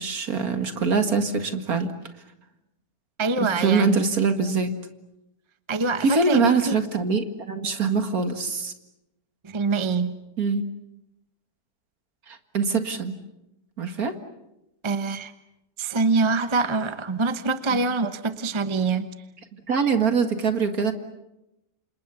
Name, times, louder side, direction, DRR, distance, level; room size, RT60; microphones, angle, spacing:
voice 1, 0.0-1.9 3.4-4.7 6.0-8.7 10.4-10.6 12.3-13.1 13.8-14.1 19.7-20.9, right 4 dB, 55° right, 7 dB, 2.3 m, -23 dB
voice 2, 3.2-4.0 5.7-6.8 9.4-10.1 14.8-15.3 15.8-19.1, right 3 dB, 20° right, 10 dB, 0.9 m, -25 dB
29.5 x 27.0 x 7.0 m, 0.91 s
omnidirectional pair, 1.9 m